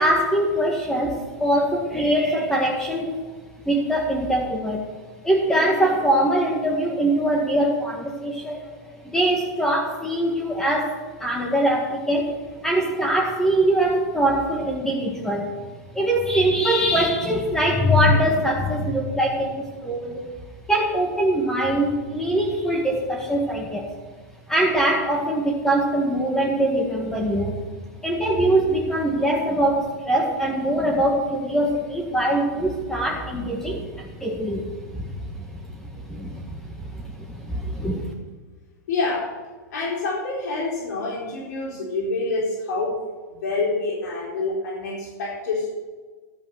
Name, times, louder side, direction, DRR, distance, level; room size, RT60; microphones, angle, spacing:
voice 1, 0.0-3.1 3.7-4.8 5.2-8.6 9.0-12.4 12.6-15.5 15.9-20.3 20.7-23.9 24.5-27.6 28.0-38.1, right 1 dB, 5° left, -1 dB, 1.8 m, -23 dB
voice 2, 38.9-39.4 39.7-43.0 43.3-45.8, left 3 dB, 70° left, -3 dB, 4.2 m, -27 dB
12.0 x 8.5 x 6.5 m, 1.4 s
hypercardioid pair, 135°, 10 cm